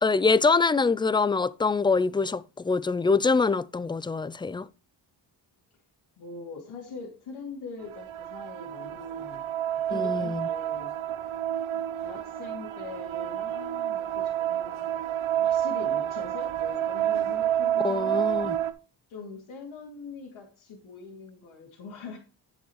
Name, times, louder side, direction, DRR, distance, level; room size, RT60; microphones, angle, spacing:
voice 1, 0.0-4.7 9.9-10.5 17.8-18.6, left 4 dB, 10° left, 0.4 m, -24 dB
voice 2, 6.2-11.4 12.0-14.9 15.4-18.2 19.1-22.2, left 4 dB, 85° left, 2.7 m, -43 dB
sound 1, 7.8-18.7, right 11 dB, 85° right, 1.0 m, -29 dB
9.3 x 8.0 x 3.1 m
cardioid pair, 75°, 47 cm